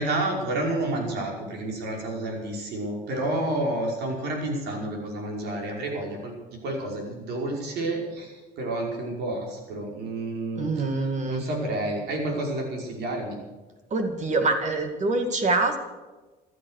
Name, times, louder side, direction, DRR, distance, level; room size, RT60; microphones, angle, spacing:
voice 1, 0.0-6.3 6.6-10.7 11.3-13.4, right 1 dB, 75° right, 1 dB, 5.5 m, -30 dB
voice 2, 10.6-11.5 13.9-15.8, right 3 dB, 45° right, 6 dB, 2.3 m, -25 dB
15.5 x 12.5 x 6.6 m, 1.2 s
cardioid pair, 110°, 17 cm